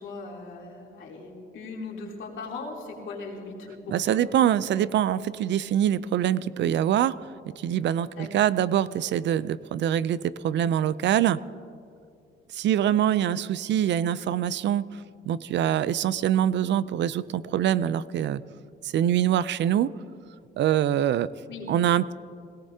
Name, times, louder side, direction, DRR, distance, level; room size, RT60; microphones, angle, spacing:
voice 1, 0.0-4.2 8.1-8.5 21.5-21.7, left 3 dB, 75° left, -3 dB, 3.2 m, -39 dB
voice 2, 3.9-7.2 7.6-11.4 12.5-14.8 15.3-18.4 18.8-19.9 20.6-21.3 21.7-22.1, right 10 dB, 65° right, 17 dB, 0.5 m, -24 dB
21.0 x 17.5 x 2.8 m, 2.3 s
cardioid pair, 90°, 20 cm